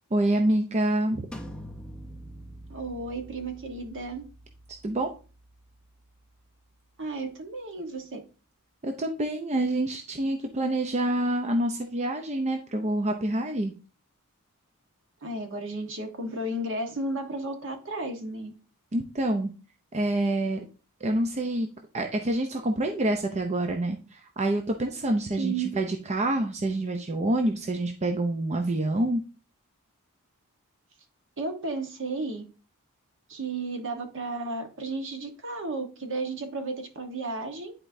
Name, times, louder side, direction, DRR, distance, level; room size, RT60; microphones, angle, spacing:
voice 1, 0.1-1.3 4.8-5.1 8.8-13.7 18.9-19.5 19.9-20.7 21.0-21.7 21.9-29.2, right 1 dB, 30° right, 4 dB, 0.6 m, -27 dB
sound 1, 1.3-7.0, equal, 5° left, 0.7 m, -46 dB
voice 2, 2.7-4.2 7.0-8.2 15.2-18.5 25.3-25.7 31.4-32.4 33.3-37.7, right 2 dB, 60° right, 5 dB, 1.2 m, -33 dB
10.0 x 4.4 x 2.6 m, 0.35 s
head